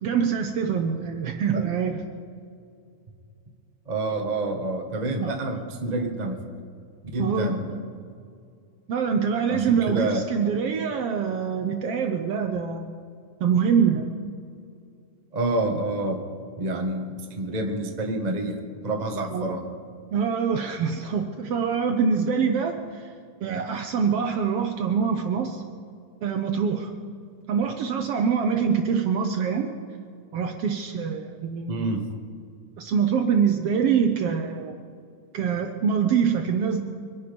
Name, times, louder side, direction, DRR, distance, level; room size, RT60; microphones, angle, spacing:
voice 1, 0.0-2.0 5.2-5.3 7.2-7.8 8.9-12.9 13.4-14.1 19.3-19.5 20.1-23.1 23.4-25.6 26.2-26.9 27.5-29.7 30.3-31.9 32.8-34.7 35.3-36.8, right 6 dB, 70° right, 5 dB, 1.5 m, -24 dB
voice 2, 3.9-6.4 7.1-7.7 9.5-10.2 15.3-16.2 16.6-18.6 18.8-19.6 31.7-32.0, right 2 dB, 35° right, 2 dB, 0.6 m, -28 dB
24.5 x 10.5 x 5.2 m, 2.4 s
omnidirectional pair, 3.5 m